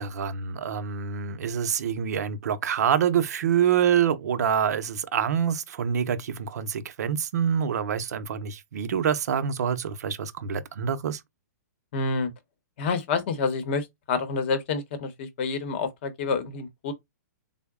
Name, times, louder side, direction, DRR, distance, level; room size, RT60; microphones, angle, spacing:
voice 1, 0.0-11.2, right 8 dB, 60° right, 0.6 m, -26 dB
voice 2, 11.9-12.3 12.8-16.9, left 4 dB, 35° left, 0.8 m, -28 dB
3.9 x 2.0 x 3.5 m
hypercardioid pair, 165°, 10 cm